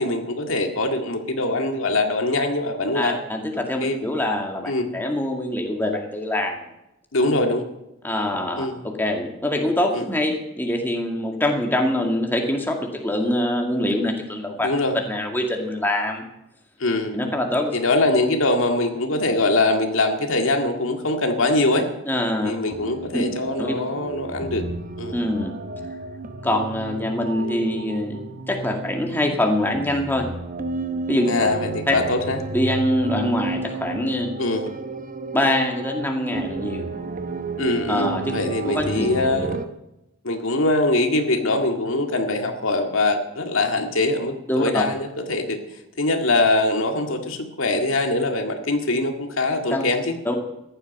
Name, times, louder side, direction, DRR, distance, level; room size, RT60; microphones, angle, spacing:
voice 1, 0.0-3.2 3.8-4.0 4.7-4.9 7.1-7.6 8.6-8.8 9.9-10.0 14.6-15.0 16.8-17.2 17.7-21.9 22.4-24.6 25.0-25.1 31.3-32.4 34.4-34.7 37.6-39.6 40.2-45.6 46.0-50.1, left 2 dB, 75° left, 4 dB, 2.0 m, -23 dB
voice 2, 2.9-6.6 8.0-14.7 14.9-16.2 17.1-17.7 22.1-22.5 23.1-23.2 23.6-23.8 25.1-25.5 26.4-30.3 31.1-31.3 31.9-32.0 32.5-34.3 35.3-36.9 37.9-38.4 38.6-39.1 44.5-44.8 49.7-49.8 50.3-50.4, left 1 dB, 10° left, 2 dB, 2.1 m, -24 dB
sound 1, 22.7-39.6, right 3 dB, 40° right, 1.0 m, -32 dB
15.0 x 11.5 x 5.5 m, 0.89 s
head